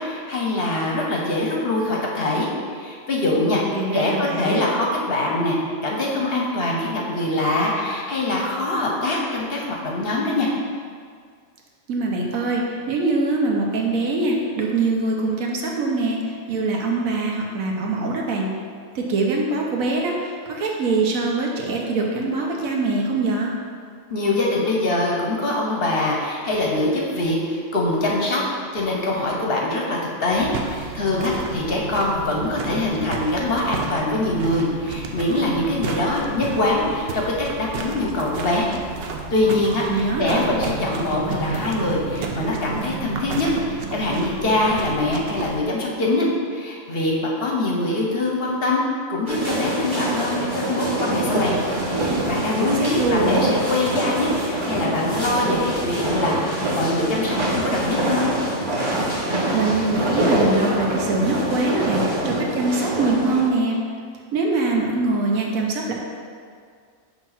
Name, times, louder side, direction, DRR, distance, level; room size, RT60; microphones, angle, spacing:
voice 1, 0.0-10.5 24.1-38.6 39.3-46.2 46.5-48.8 49.1-51.5 51.8-58.3, left 2 dB, 50° left, -2 dB, 0.8 m, -23 dB
voice 2, 3.7-4.6 11.9-18.5 18.9-23.5 39.9-40.4 52.6-53.4 59.3-63.8 64.3-65.9, right 3 dB, 80° right, -1 dB, 1.3 m, -23 dB
sound 1, 30.4-45.6, right 4 dB, 60° right, 0.7 m, -32 dB
sound 2, 49.3-63.5, right 1 dB, 20° right, 1.7 m, -25 dB
6.8 x 2.9 x 5.6 m, 2.1 s
omnidirectional pair, 1.5 m